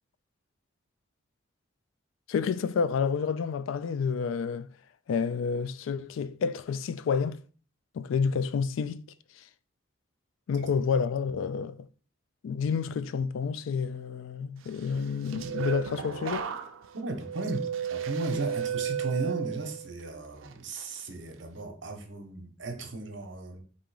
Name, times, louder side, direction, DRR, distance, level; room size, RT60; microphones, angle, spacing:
voice 1, 2.3-4.7 5.1-7.4 7.9-9.1 10.5-11.9 12.4-16.5, left 6 dB, 85° left, 0.3 m, -29 dB
sound 1, 15.0-20.0 20.4-20.8, right 8 dB, 90° right, 0.4 m, -34 dB
voice 2, 16.9-17.6 17.9-23.6, right 2 dB, 70° right, 0.9 m, -35 dB
3.7 x 2.8 x 4.7 m
head